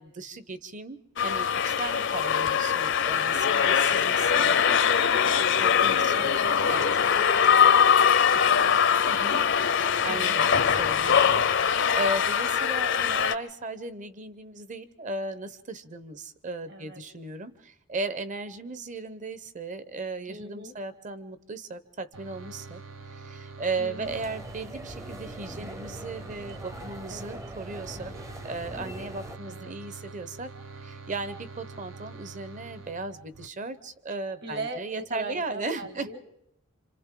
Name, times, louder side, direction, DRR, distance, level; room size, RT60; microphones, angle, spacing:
voice 1, 0.0-4.6 5.6-6.3 6.7-6.8 9.1-9.5 10.0-22.8 23.2-28.1 28.4-36.1, right 2 dB, 40° right, 13 dB, 0.9 m, -36 dB
sound 1, 1.2-13.3, left 7 dB, 65° left, 0.7 m, -22 dB
voice 2, 3.4-3.8 4.3-7.8 8.3-8.8 10.1-10.5 16.7-17.0 20.3-20.8 23.8-24.2 27.1-27.4 29.4-29.7 34.4-36.3, right 1 dB, 55° right, 7 dB, 1.9 m, -41 dB
sound 2, 22.1-33.5, right 4 dB, 75° right, 1.0 m, -45 dB
sound 3, 24.0-29.4, right 1 dB, 15° right, 0.7 m, -42 dB
28.5 x 26.5 x 3.8 m, 0.78 s
head